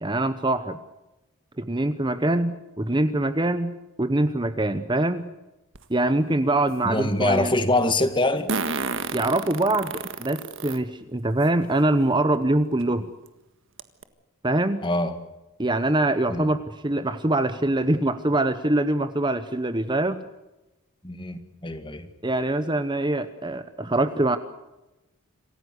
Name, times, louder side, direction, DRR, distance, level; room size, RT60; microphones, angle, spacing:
voice 1, 0.0-0.8 1.6-5.3 5.9-7.5 9.1-13.1 14.4-14.8 15.6-20.2 22.2-24.4, right 1 dB, 20° right, 0.9 m, -24 dB
Fart, 5.8-5.9 8.5-10.8 11.4-11.5 12.8-12.9 13.3-13.4 13.8-14.0, right 4 dB, 60° right, 1.7 m, -30 dB
voice 2, 6.8-8.5 14.8-15.2 16.3-16.5 21.0-22.1, left 2 dB, 20° left, 1.9 m, -24 dB
27.0 x 15.5 x 8.1 m
head